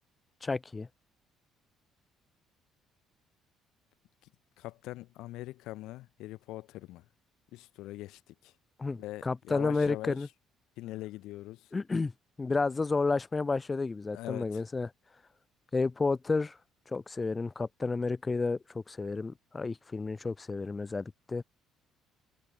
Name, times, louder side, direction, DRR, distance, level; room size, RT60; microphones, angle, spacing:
voice 1, 0.4-0.9 8.8-10.3 11.7-12.1 12.4-14.9 15.7-16.6 16.9-21.4, left 3 dB, 25° left, 1.3 m, -31 dB
voice 2, 4.6-7.0 7.5-8.5 9.0-10.2 10.8-11.7 14.1-14.6, left 17 dB, 70° left, 2.9 m, -42 dB
hypercardioid pair, 55°, 0 cm